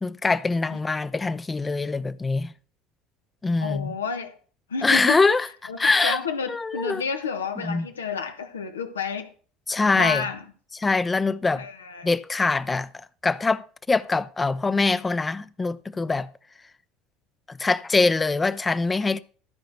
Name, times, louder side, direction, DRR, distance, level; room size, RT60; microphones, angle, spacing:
voice 1, 0.0-2.5 3.4-3.9 4.8-5.5 5.8-6.2 6.5-7.0 7.6-7.9 9.7-10.2 10.8-11.6 12.0-16.3 17.5-19.2, left 3 dB, 20° left, 0.6 m, -23 dB
voice 2, 3.6-4.4 4.7-5.2 5.7-9.3 9.9-10.4 11.5-12.1, left 5 dB, 90° left, 1.3 m, -30 dB
13.5 x 5.1 x 5.9 m
hypercardioid pair, 70°, 0 cm